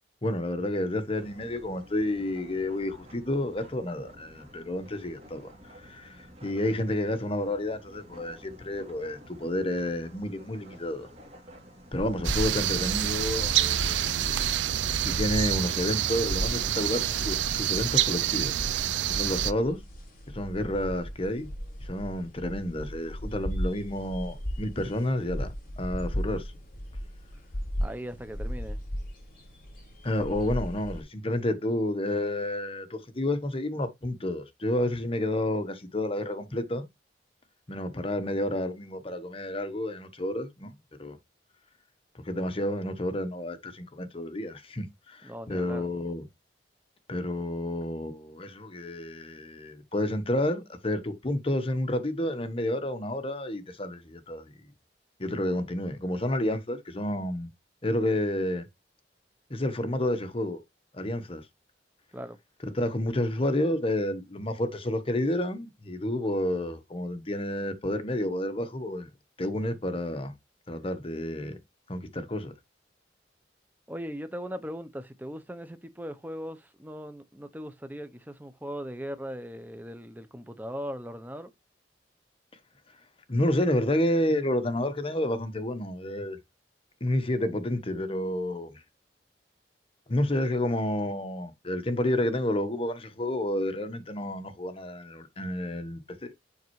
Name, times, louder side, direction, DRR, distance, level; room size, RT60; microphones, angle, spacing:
voice 1, 0.2-5.5 5.8-11.1 11.9-14.5 15.0-18.5 19.1-19.8 20.3-21.5 21.8-26.5 30.0-36.9 37.7-40.7 41.0-41.2 42.2-46.3 47.1-54.5 55.2-57.5 57.8-58.7 59.5-60.6 60.9-61.4 62.6-69.1 69.4-70.3 70.7-71.5 71.9-72.5 83.3-86.4 87.0-88.8 90.1-96.3, left 1 dB, 30° left, 1.1 m, -30 dB
sound 1, 1.1-17.0, equal, 35° right, 2.9 m, -51 dB
sound 2, 11.9-31.0, equal, 55° left, 3.8 m, -36 dB
sound 3, 12.2-19.5, right 12 dB, 90° right, 0.4 m, -27 dB
voice 2, 27.8-28.8 45.2-45.8 62.1-62.4 73.9-81.5, equal, 10° right, 0.7 m, -39 dB
7.1 x 5.4 x 3.1 m
head